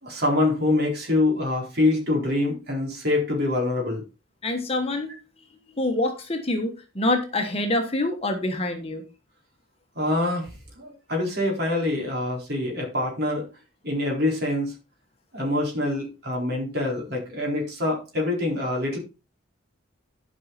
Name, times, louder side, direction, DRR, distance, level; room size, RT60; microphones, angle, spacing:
voice 1, 0.0-4.0 9.9-13.5 13.8-14.7 15.3-19.0, left 2 dB, 50° right, -1 dB, 4.1 m, -25 dB
voice 2, 4.4-5.1 5.8-9.0, left 2 dB, 30° left, 4 dB, 1.3 m, -26 dB
11.0 x 5.6 x 4.2 m, 0.31 s
head